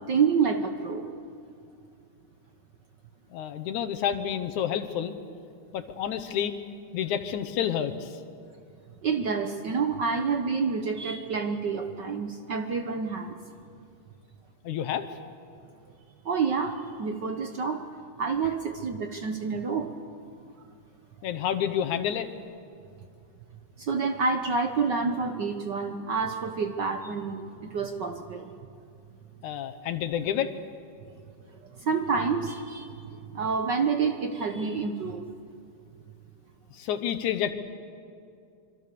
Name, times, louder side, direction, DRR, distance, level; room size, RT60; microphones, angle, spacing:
voice 1, 0.1-1.1 9.0-13.4 16.2-17.9 18.2-19.9 23.8-28.5 31.5-35.2, right 5 dB, 70° right, 6 dB, 1.0 m, -28 dB
voice 2, 3.3-5.2 5.7-6.6 6.9-8.2 14.6-15.1 21.2-22.3 29.4-30.5 36.7-37.5, left 9 dB, 75° left, 8 dB, 2.4 m, -29 dB
26.0 x 25.5 x 6.8 m, 2.4 s
omnidirectional pair, 3.5 m